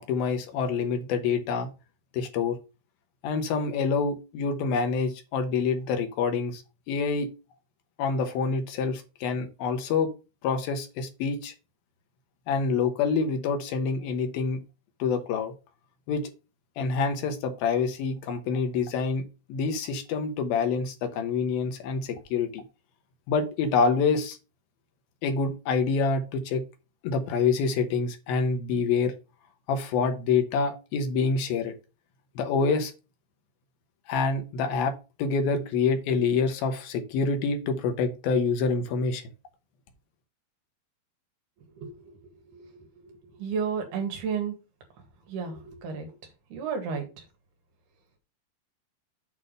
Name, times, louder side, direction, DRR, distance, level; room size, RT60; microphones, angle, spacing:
voice 1, 0.0-1.7 2.1-2.6 3.2-6.6 6.9-7.3 8.0-10.1 10.4-11.5 12.5-14.6 15.0-15.5 16.1-16.3 16.8-19.2 19.5-22.6 23.3-24.4 25.2-26.6 27.0-29.1 29.7-31.7 32.4-32.9 34.1-39.3, left 5 dB, 70° left, 6 dB, 2.7 m, -26 dB
voice 2, 41.8-42.1 42.5-44.5 45.3-46.1 46.5-47.1, right 6 dB, 80° right, 4 dB, 3.9 m, -33 dB
8.4 x 3.6 x 6.6 m, 0.30 s
omnidirectional pair, 4.6 m